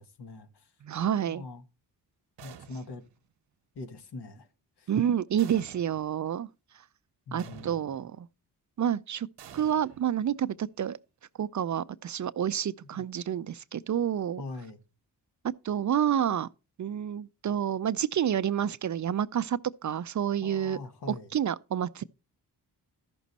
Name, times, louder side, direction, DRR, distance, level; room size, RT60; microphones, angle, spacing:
voice 1, 0.0-0.7 1.2-1.6 2.4-3.0 3.7-4.5 4.8-4.9 7.3-7.9 12.8-13.0 14.4-14.8 20.4-21.3, left 3 dB, 70° left, 1.5 m, -42 dB
voice 2, 0.8-1.4 4.9-6.5 7.3-8.3 8.8-9.3 9.5-11.0 11.4-14.4 15.6-16.5 16.8-20.8 21.3-22.0, right 9 dB, 45° right, 0.5 m, -29 dB
sound 1, 2.4-3.1 5.4-6.2 7.4-8.2 9.4-10.6, right 8 dB, 75° right, 1.0 m, -50 dB
13.5 x 6.1 x 4.1 m
cardioid pair, 65°, 41 cm